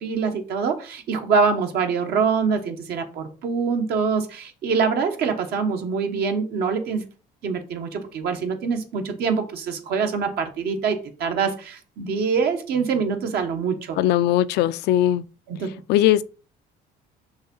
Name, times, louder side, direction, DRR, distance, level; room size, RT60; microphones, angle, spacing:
voice 1, 0.0-7.1 7.4-14.0 15.5-15.7, right 5 dB, 70° right, 1.3 m, -24 dB
voice 2, 14.0-15.2 15.9-16.2, left 13 dB, 85° left, 0.4 m, -19 dB
5.5 x 3.5 x 5.4 m
cardioid pair, 110°, 17 cm